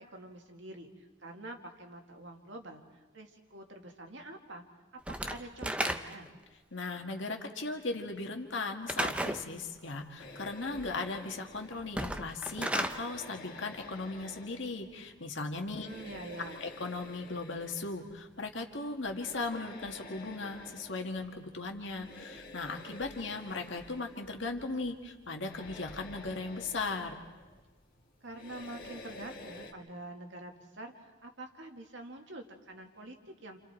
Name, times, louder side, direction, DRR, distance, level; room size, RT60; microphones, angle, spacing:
voice 1, 0.0-4.6 4.9-6.3 15.7-16.7 28.2-33.6, right 1 dB, 60° right, 3 dB, 2.1 m, -46 dB
Slam / Wood, 5.1-6.4 8.9-9.4 11.8-13.0, right 1 dB, 5° right, 0.7 m, -33 dB
voice 2, 6.7-15.9 16.6-27.2, left 3 dB, 60° left, 3 dB, 1.9 m, -37 dB
sound 1, 10.2-29.7, left 2 dB, 45° left, 1.9 m, -51 dB
29.5 x 28.5 x 4.5 m, 1.2 s
head